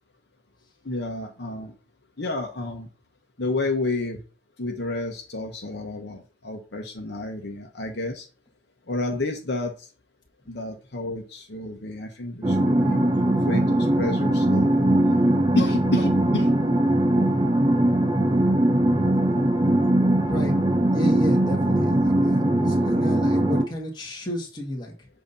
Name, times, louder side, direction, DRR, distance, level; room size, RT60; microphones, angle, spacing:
voice 1, 0.8-1.7 2.2-2.9 3.4-4.2 4.6-8.3 8.9-9.9 10.5-13.0 13.5-14.7 15.5-16.5, left 2 dB, 55° left, 2 dB, 1.0 m, -30 dB
sound 1, 12.4-23.6, right 1 dB, 20° right, 0.7 m, -20 dB
voice 2, 20.3-20.6 20.9-25.1, equal, 20° left, -1 dB, 1.7 m, -32 dB
7.8 x 2.8 x 5.3 m, 0.35 s
head